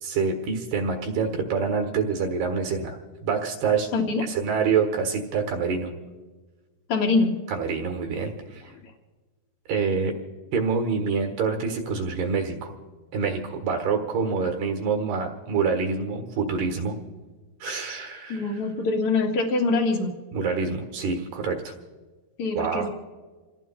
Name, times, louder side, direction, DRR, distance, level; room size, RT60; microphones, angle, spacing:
voice 1, 0.0-3.9 4.3-5.9 7.5-8.7 9.7-10.1 10.5-12.7 13.1-17.0 17.6-18.6 20.3-21.7 22.5-22.9, right 5 dB, 65° right, 4 dB, 2.7 m, -26 dB
voice 2, 3.9-4.2 6.9-7.3 18.3-20.1 22.4-22.9, left 3 dB, 70° left, 0 dB, 1.3 m, -24 dB
28.5 x 19.0 x 2.3 m, 1.3 s
omnidirectional pair, 5.9 m